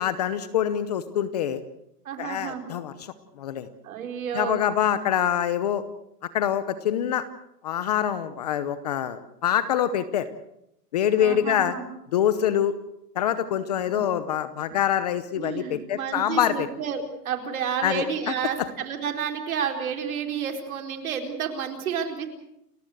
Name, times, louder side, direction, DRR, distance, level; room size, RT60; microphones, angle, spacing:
voice 1, 0.0-1.6 2.2-3.7 4.3-5.8 6.3-7.2 7.6-10.3 10.9-11.7 12.1-12.7 13.1-16.7 17.8-18.3, left 10 dB, 25° left, 13 dB, 0.8 m, -25 dB
voice 2, 2.0-2.6 3.8-4.6 11.2-11.8 13.8-14.0 15.4-22.3, right 7 dB, 55° right, 5 dB, 4.4 m, -30 dB
29.5 x 14.5 x 7.9 m, 0.81 s
hypercardioid pair, 170°, 49 cm